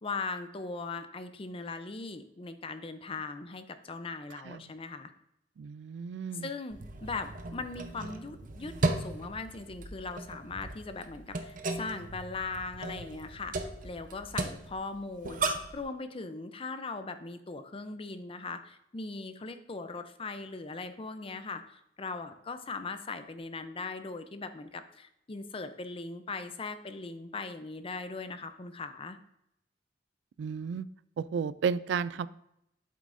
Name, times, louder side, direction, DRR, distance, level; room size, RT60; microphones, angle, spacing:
voice 1, 0.0-5.1 6.3-29.2, left 3 dB, 30° left, 10 dB, 0.5 m, -39 dB
voice 2, 5.6-6.5 30.4-30.9 31.2-32.3, right 6 dB, 80° right, 17 dB, 0.3 m, -32 dB
sound 1, 6.7-15.8, right 2 dB, 50° right, 0.7 m, -36 dB
8.4 x 7.3 x 2.6 m, 0.80 s
head